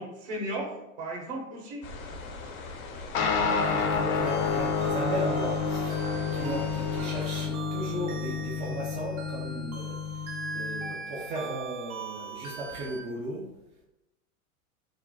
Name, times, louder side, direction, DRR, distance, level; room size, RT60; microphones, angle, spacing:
voice 1, 0.0-1.9 6.4-6.6, right 1 dB, 50° right, -1 dB, 1.2 m, -36 dB
sound 1, 1.8-7.5, left 3 dB, 75° left, 0.8 m, -40 dB
sound 2, 3.1-10.9, left 5 dB, 35° left, 0.5 m, -30 dB
voice 2, 3.4-6.0 6.3-10.0 10.5-13.5, right 1 dB, 20° right, -2 dB, 0.3 m, -36 dB
sound 3, 4.3-13.0, right 4 dB, 80° right, 0.8 m, -41 dB
3.7 x 2.1 x 2.2 m, 0.96 s
hypercardioid pair, 100°, 42 cm